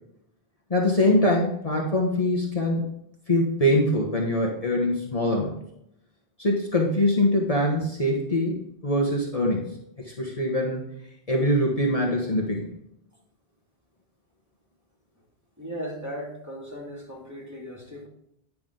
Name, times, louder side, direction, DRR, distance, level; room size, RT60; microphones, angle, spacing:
voice 1, 0.7-2.9 3.3-5.6 6.4-9.7 10.0-10.8 11.3-12.7, left 1 dB, 35° left, -2 dB, 1.3 m, -23 dB
voice 2, 15.6-18.1, equal, 15° right, -4 dB, 2.3 m, -37 dB
9.5 x 5.9 x 3.8 m, 0.75 s
omnidirectional pair, 1.1 m